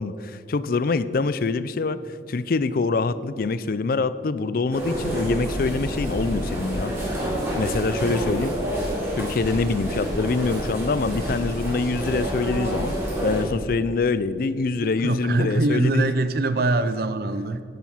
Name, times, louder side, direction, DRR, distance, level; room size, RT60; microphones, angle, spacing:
voice 1, 0.0-2.0 2.3-6.9 7.6-8.5 9.2-12.9 13.2-16.1, left 3 dB, 55° left, 15 dB, 0.4 m, -25 dB
sound 1, 4.7-13.4, equal, 15° right, 3.5 m, -28 dB
voice 2, 14.8-17.6, right 2 dB, 60° right, 12 dB, 0.5 m, -23 dB
10.5 x 9.3 x 5.6 m, 2.2 s
head